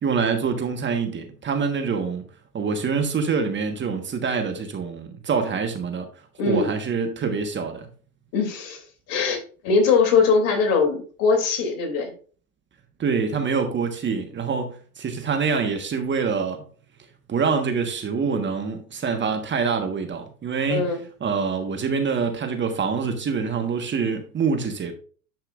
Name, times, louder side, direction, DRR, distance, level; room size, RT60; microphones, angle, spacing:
voice 1, 0.0-2.2 2.5-6.1 6.5-7.9 13.0-16.6 17.3-20.9 21.2-24.9, right 5 dB, 25° right, 1.4 m, -25 dB
voice 2, 6.4-6.7 8.3-12.1 20.7-21.0, left 5 dB, 55° left, 3.0 m, -21 dB
10.5 x 5.7 x 2.5 m
hypercardioid pair, 95°, 44 cm